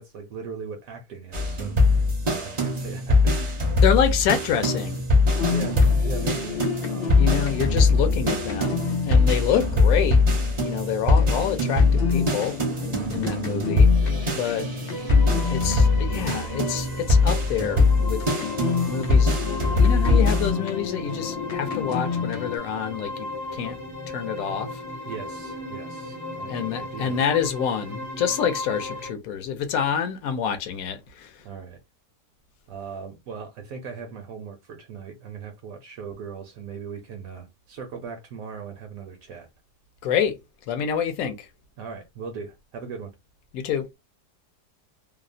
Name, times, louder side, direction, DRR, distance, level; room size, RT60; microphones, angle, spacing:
voice 1, 0.0-3.3 5.4-6.6 6.9-7.3 25.1-27.2 31.4-31.8 32.7-39.5 41.8-43.1, right 5 dB, 70° right, 0.9 m, -39 dB
sound 1, 1.3-20.5, left 3 dB, 45° right, 0.5 m, -21 dB
voice 2, 3.8-5.0 7.2-12.6 13.1-13.9 14.4-14.7 15.5-18.2 18.9-19.3 19.8-23.8 24.1-24.8 26.5-31.4 40.0-40.4 40.7-41.5 43.5-43.9, left 8 dB, 70° left, 0.9 m, -27 dB
sound 2, 5.3-17.4 17.8-22.6, left 6 dB, 90° left, 0.5 m, -31 dB
sound 3, 14.9-29.1, left 1 dB, 20° left, 0.5 m, -36 dB
2.8 x 2.0 x 2.4 m
omnidirectional pair, 1.7 m